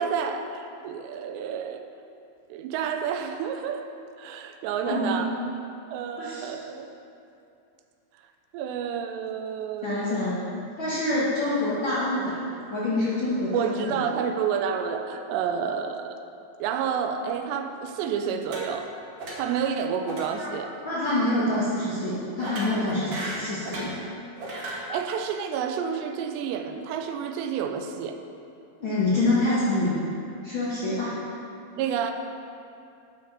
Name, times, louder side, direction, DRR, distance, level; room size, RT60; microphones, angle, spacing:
voice 1, 0.0-1.9 2.5-3.9 4.2-5.3 5.9-6.9 8.5-10.2 13.5-16.2 16.6-18.9 19.3-20.7 24.7-28.2 31.8-32.1, right 7 dB, 80° right, 6 dB, 2.8 m, -29 dB
voice 2, 4.8-5.2 6.2-6.5 9.8-10.4 10.8-12.4 12.7-14.0 20.4-20.5 20.8-24.0 28.8-30.0 30.4-31.1, left 2 dB, 85° left, -10 dB, 1.0 m, -26 dB
sound 1, 18.4-18.9 19.2-19.6 20.1-20.3 20.6-20.8 22.4-24.0 24.4-24.8, right 2 dB, 60° right, 1.7 m, -36 dB
11.5 x 6.2 x 6.7 m, 2.6 s
omnidirectional pair, 5.1 m